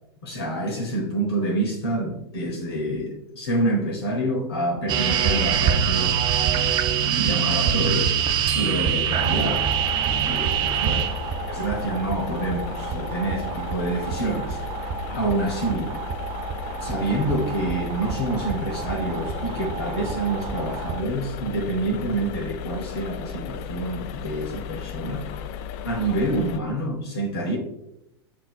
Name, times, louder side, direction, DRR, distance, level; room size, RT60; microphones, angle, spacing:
voice 1, 0.2-6.7 7.0-8.1 8.5-11.1 11.5-15.9 16.8-25.3 25.8-27.6, right 1 dB, 65° left, 0 dB, 1.0 m, -27 dB
sound 1, 4.9-21.0, right 8 dB, 35° right, 0.5 m, -26 dB
sound 2, 7.5-20.0, right 5 dB, 65° right, 0.7 m, -47 dB
sound 3, 9.2-26.6, left 8 dB, 45° left, 0.3 m, -35 dB
7.3 x 2.8 x 2.4 m, 0.85 s
figure-of-eight pair, 95°, 14 cm